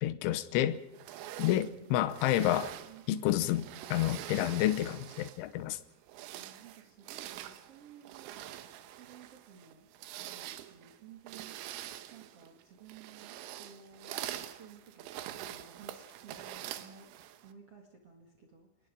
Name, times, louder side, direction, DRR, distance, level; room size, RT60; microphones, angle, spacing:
voice 1, 0.0-0.8 1.4-2.7 3.1-3.6 3.9-5.8, left 13 dB, 75° left, 3.2 m, -29 dB
sound 1, 0.9-5.5 6.0-17.5, right 13 dB, 85° right, 3.6 m, -45 dB
voice 2, 2.8-3.6 6.3-8.4 9.0-9.9 10.2-11.5 12.1-17.2 17.4-18.9, right 6 dB, 50° right, 1.8 m, -55 dB
26.5 x 20.5 x 5.1 m
omnidirectional pair, 5.8 m